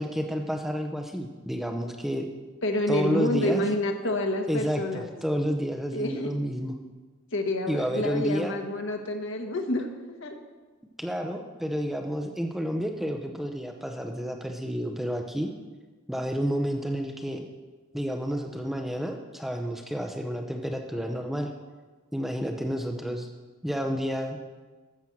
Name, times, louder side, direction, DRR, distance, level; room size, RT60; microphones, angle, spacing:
voice 1, 0.0-2.3 2.9-3.6 4.5-6.7 7.7-8.6 11.0-15.5 16.1-17.5 17.9-21.5 22.1-23.3 23.6-24.4, equal, ahead, 3 dB, 0.7 m, -30 dB
voice 2, 2.6-5.1 5.9-6.3 7.3-9.9 10.2-10.4, left 1 dB, 60° left, 4 dB, 1.4 m, -28 dB
14.0 x 6.2 x 7.2 m, 1.3 s
head